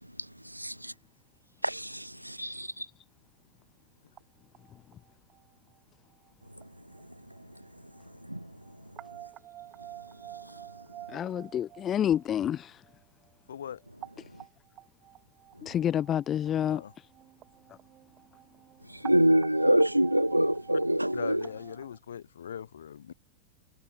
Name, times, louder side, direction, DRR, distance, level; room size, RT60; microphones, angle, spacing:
voice 1, 0.5-0.9 1.6-2.9 8.3-8.4 19.0-21.4, equal, 90° right, 0.4 m, -25 dB
sound 1, 4.2-4.3 4.5-5.7 6.2-6.3 6.6-6.7 6.9-7.0 7.4-7.5 7.6-8.0 8.4-13.3 13.8-22.0, right 13 dB, 35° right, 2.5 m, -49 dB
voice 2, 11.1-12.8 15.6-17.1, left 10 dB, 25° left, 0.3 m, -29 dB
voice 3, 13.5-13.8 16.7-16.9 21.1-23.1, left 8 dB, 65° left, 3.5 m, -40 dB
figure-of-eight pair, 90°, 0 cm